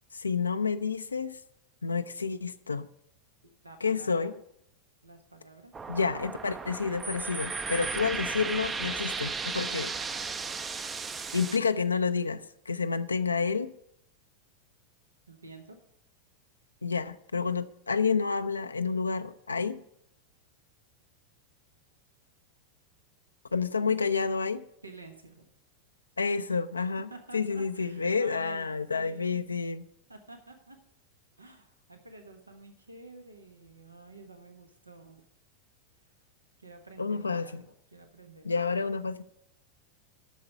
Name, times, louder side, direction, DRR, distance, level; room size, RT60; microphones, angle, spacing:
voice 1, 0.1-1.4 1.8-2.9 3.8-4.3 5.9-9.9 11.3-13.7 16.8-19.8 23.5-24.6 26.2-29.8 37.0-37.6 38.5-39.2, left 5 dB, 75° left, 9 dB, 0.4 m, -29 dB
voice 2, 3.4-4.3 5.0-5.7 15.3-15.8 24.8-25.5 27.1-29.5 30.1-30.8 31.4-35.2 36.6-38.8, right 2 dB, 80° right, 5 dB, 1.2 m, -50 dB
sound 1, 5.7-11.6, right 4 dB, 20° right, 0.5 m, -35 dB
8.3 x 6.6 x 8.1 m, 0.74 s
figure-of-eight pair, 90°, 0 cm